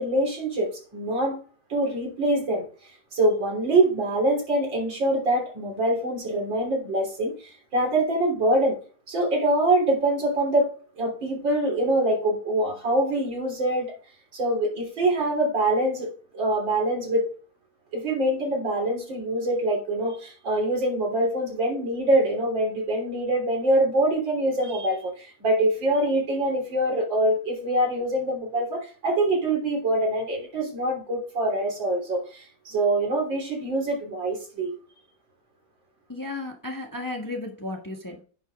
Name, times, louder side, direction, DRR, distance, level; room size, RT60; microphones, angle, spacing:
voice 1, 0.0-1.4 1.7-2.7 3.1-8.8 9.1-10.7 11.0-13.9 14.3-17.3 17.9-34.7, right 1 dB, 80° right, 0 dB, 4.0 m, -24 dB
voice 2, 36.1-38.2, left 2 dB, 10° left, 1 dB, 1.4 m, -34 dB
10.0 x 5.6 x 3.5 m, 0.40 s
omnidirectional pair, 2.0 m